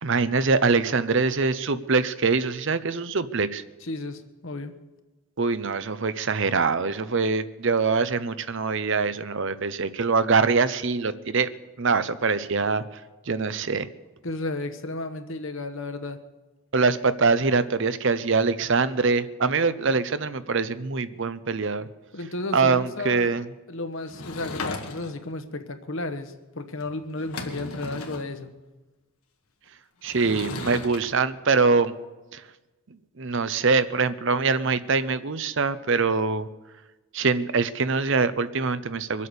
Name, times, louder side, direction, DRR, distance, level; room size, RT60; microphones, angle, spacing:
voice 1, 0.0-3.6 5.4-11.5 11.8-12.8 13.3-13.9 16.7-21.9 22.5-23.5 30.0-31.9 32.3-32.4 33.2-36.5 37.1-39.3, right 4 dB, 55° right, 13 dB, 0.7 m, -23 dB
voice 2, 3.8-4.7 14.2-16.2 22.1-23.3 23.7-28.5, left 2 dB, 60° left, 8 dB, 1.1 m, -33 dB
Sliding door / Wood, 24.1-25.3 26.8-26.9 27.1-28.3 30.0-31.0, left 3 dB, 80° left, 1.8 m, -35 dB
23.5 x 8.4 x 6.8 m, 1.1 s
head